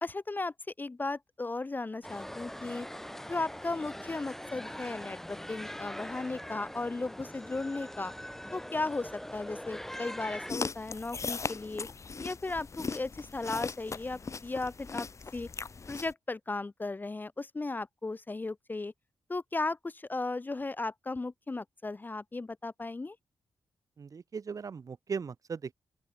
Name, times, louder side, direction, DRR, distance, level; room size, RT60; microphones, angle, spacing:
voice 1, 0.0-2.9 3.3-8.1 8.5-11.9 12.2-15.1 15.3-15.5 15.9-18.9 19.3-23.2, left 3 dB, 25° left, 0.7 m, -36 dB
sound 1, 2.0-10.5, equal, 5° left, 3.3 m, -42 dB
sound 2, 10.5-16.1, left 4 dB, 40° left, 2.1 m, -38 dB
voice 2, 24.0-25.7, right 5 dB, 45° right, 0.9 m, -38 dB
open air
cardioid pair, 100°, 8 cm